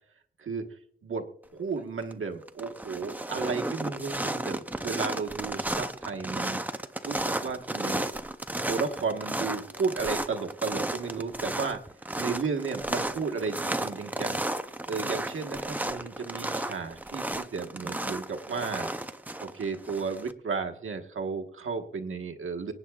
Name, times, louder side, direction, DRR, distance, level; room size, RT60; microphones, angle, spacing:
voice 1, 1.5-6.7 7.0-8.1 8.7-11.8 12.2-14.4 14.9-18.9 19.4-22.7, right 5 dB, 80° right, 4 dB, 1.3 m, -33 dB
sound 1, 1.8-2.1 2.4-20.3, right 1 dB, 10° right, 0.5 m, -33 dB
26.0 x 9.1 x 2.4 m, 0.65 s
wide cardioid pair, 170°, 21 cm